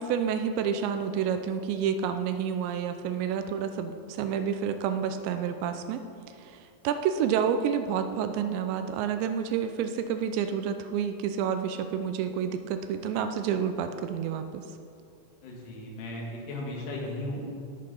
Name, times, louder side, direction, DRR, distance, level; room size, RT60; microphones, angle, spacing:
voice 1, 0.0-6.0 6.4-6.6 6.8-14.6, right 8 dB, 80° right, 8 dB, 2.7 m, -29 dB
voice 2, 15.4-17.4, left 1 dB, 85° left, -2 dB, 4.5 m, -36 dB
17.5 x 6.7 x 5.4 m, 2.5 s
omnidirectional pair, 5.4 m